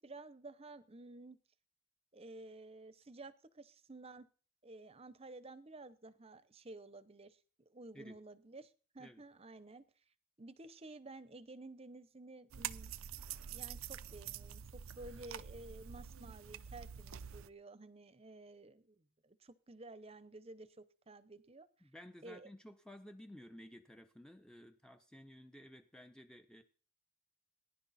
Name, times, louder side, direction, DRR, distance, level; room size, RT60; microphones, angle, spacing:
voice 1, 0.0-1.4 2.1-4.3 4.6-7.4 7.7-9.8 10.4-12.9 13.5-21.7 22.2-22.5, right 2 dB, 30° right, 15 dB, 0.8 m, -53 dB
sound 1, 12.5-17.5, right 9 dB, 90° right, 0.6 m, -46 dB
voice 2, 21.8-26.6, equal, 5° left, 6 dB, 0.8 m, -55 dB
19.5 x 11.0 x 4.2 m, 0.41 s
head